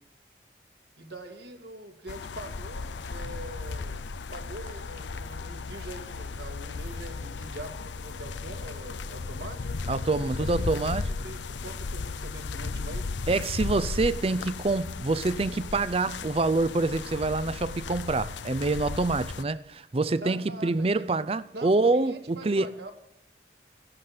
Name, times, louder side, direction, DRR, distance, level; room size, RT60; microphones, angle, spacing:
voice 1, 1.0-9.7 10.1-11.0 11.2-13.1 20.2-21.2 21.5-22.9, right 1 dB, 70° right, 2.3 m, -43 dB
sound 1, 2.1-19.4, left 4 dB, 90° left, 0.6 m, -35 dB
voice 2, 9.9-11.0 13.3-22.7, right 3 dB, 30° right, 0.5 m, -26 dB
15.0 x 12.0 x 5.9 m
head